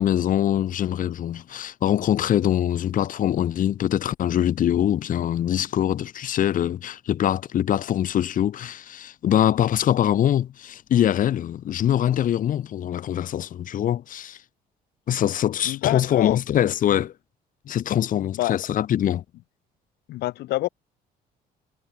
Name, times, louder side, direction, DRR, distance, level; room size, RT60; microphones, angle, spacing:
voice 1, 0.0-14.4 15.1-17.1 17.7-19.2, left 11 dB, 50° left, 1.2 m, -23 dB
voice 2, 15.6-16.4 18.4-18.6 20.1-20.7, left 16 dB, 75° left, 1.4 m, -27 dB
cardioid pair, 110°, 17 cm